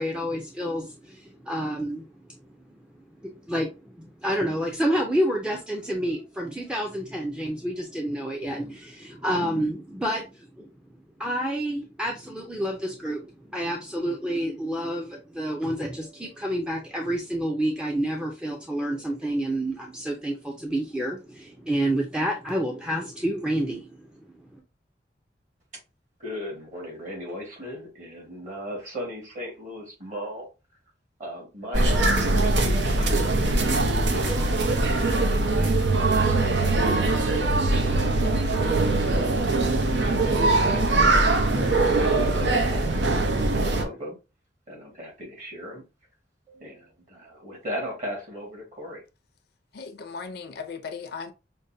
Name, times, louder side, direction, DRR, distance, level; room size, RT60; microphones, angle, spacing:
voice 1, 0.0-2.1 3.2-10.3 10.6-10.7 11.2-24.2, equal, 5° right, 0.5 m, -29 dB
voice 2, 26.2-30.5 31.2-38.7 39.1-39.4 40.2-44.2 44.7-45.8 46.5-49.0, equal, 45° right, 1.7 m, -38 dB
sound 1, 31.7-43.8, right 2 dB, 85° right, 0.7 m, -22 dB
voice 3, 49.7-51.3, left 5 dB, 65° left, 0.5 m, -37 dB
5.2 x 2.1 x 2.6 m
head